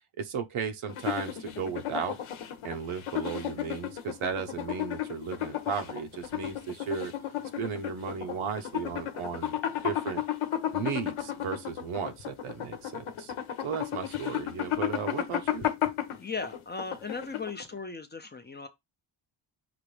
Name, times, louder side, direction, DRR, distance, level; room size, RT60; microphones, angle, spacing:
voice 1, 0.2-2.2 2.6-7.1 7.6-9.6 9.8-10.2 10.7-13.3 13.6-15.7, right 6 dB, 80° right, 1.0 m, -35 dB
sound 1, 0.9-17.7, left 11 dB, 85° left, 1.0 m, -33 dB
voice 2, 16.2-18.7, left 4 dB, 20° left, 0.5 m, -37 dB
5.9 x 2.6 x 3.3 m
wide cardioid pair, 155°, 48 cm